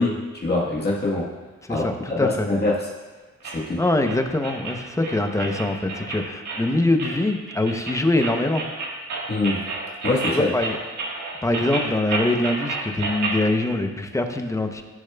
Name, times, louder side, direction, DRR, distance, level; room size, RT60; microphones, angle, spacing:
voice 1, 0.0-1.3 1.7-2.9 3.4-3.8 9.3-9.6 10.0-10.5, left 2 dB, 35° left, -4 dB, 1.3 m, -24 dB
voice 2, 1.7-2.5 3.8-8.6 10.3-10.8 11.4-14.8, left 2 dB, 10° left, 6 dB, 0.6 m, -23 dB
sound 1, 3.4-13.4, right 3 dB, 75° right, 1.5 m, -31 dB
13.5 x 6.7 x 2.2 m, 1.3 s
cardioid pair, 115°, 29 cm